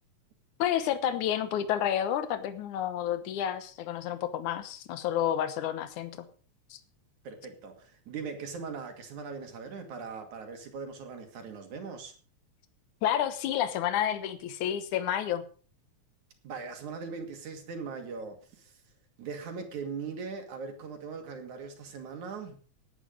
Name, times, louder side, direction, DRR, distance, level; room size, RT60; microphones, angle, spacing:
voice 1, 0.6-6.3 6.7-6.8 13.0-15.4, left 10 dB, 85° left, 11 dB, 2.6 m, -30 dB
voice 2, 7.2-12.1 16.4-18.7 19.2-22.6, right 5 dB, 80° right, 5 dB, 3.7 m, -40 dB
18.0 x 9.2 x 5.2 m, 0.41 s
omnidirectional pair, 3.4 m